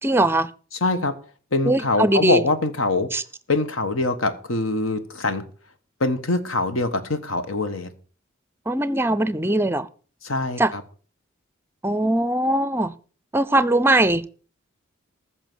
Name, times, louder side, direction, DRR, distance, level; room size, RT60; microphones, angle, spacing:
voice 1, 0.0-0.5 1.7-2.4 3.1-3.2 8.7-9.9 10.6-10.7 11.8-12.9 13.3-14.3, right 1 dB, 10° right, 0.5 m, -20 dB
voice 2, 0.8-1.1 1.5-3.1 3.5-5.5 6.0-7.9 10.2-10.8, left 2 dB, 75° left, 1.4 m, -23 dB
14.5 x 6.3 x 6.2 m
head